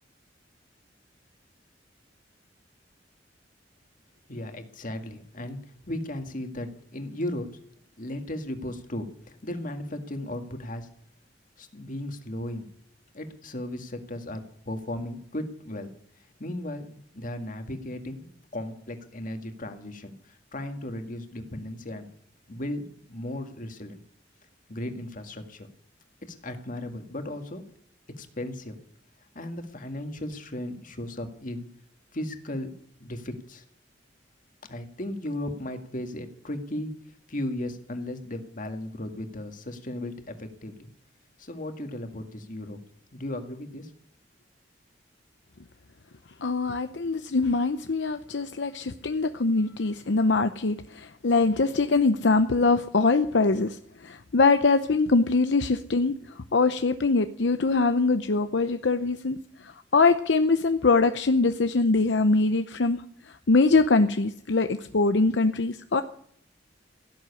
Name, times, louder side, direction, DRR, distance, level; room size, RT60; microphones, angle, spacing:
voice 1, 4.3-7.5 8.0-10.9 11.6-12.7 13.1-22.1 22.5-24.0 24.7-25.7 26.2-27.6 28.2-28.8 29.4-31.7 32.1-32.7 33.0-33.6 34.7-37.0 37.3-40.9 41.4-42.8 43.1-43.9, left 1 dB, 45° left, 7 dB, 2.0 m, -36 dB
voice 2, 46.4-66.0, left 3 dB, 70° left, 9 dB, 0.7 m, -23 dB
17.0 x 7.9 x 9.7 m, 0.66 s
head